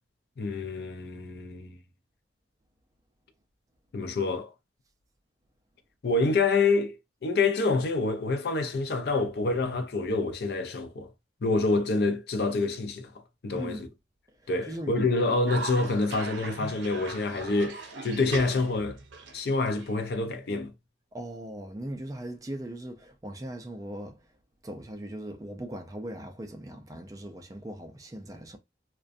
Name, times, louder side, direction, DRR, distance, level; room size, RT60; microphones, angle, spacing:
voice 1, 0.4-1.8 3.9-4.5 6.0-7.0 7.2-11.1 11.4-13.1 13.4-13.9 14.5-19.0 19.3-20.7, left 3 dB, 55° left, 0.4 m, -27 dB
voice 2, 13.5-13.9 14.3-15.0 21.1-24.3 24.6-28.6, right 1 dB, 20° right, 0.3 m, -39 dB
Cough, 15.5-20.5, right 4 dB, 75° right, 0.6 m, -40 dB
2.5 x 2.2 x 2.4 m
head